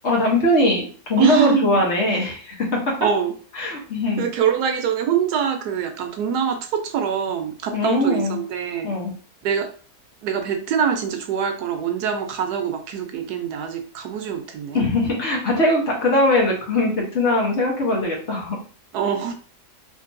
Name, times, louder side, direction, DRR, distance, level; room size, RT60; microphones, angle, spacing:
voice 1, 0.0-2.5 3.6-4.2 7.7-8.4 8.8-9.1 14.7-18.6, left 1 dB, 50° left, -1 dB, 1.1 m, -21 dB
voice 2, 1.2-1.9 3.0-3.3 4.2-8.9 9.4-9.7 10.2-14.9 18.9-19.3, right 7 dB, 90° right, 5 dB, 1.2 m, -24 dB
3.7 x 2.5 x 2.5 m, 0.40 s
omnidirectional pair, 1.6 m